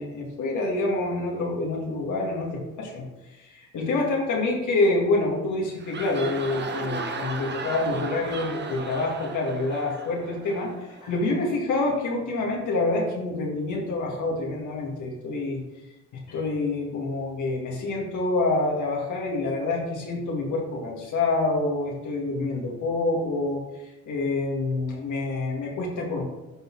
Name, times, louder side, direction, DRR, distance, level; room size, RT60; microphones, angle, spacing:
voice 1, 0.0-3.0 3.4-15.6 16.3-26.2, left 2 dB, 75° left, -1 dB, 2.1 m, -27 dB
sound 1, 5.6-11.2, right 3 dB, 35° right, 1.1 m, -35 dB
12.0 x 4.1 x 4.7 m, 1.0 s
cardioid pair, 90°, 30 cm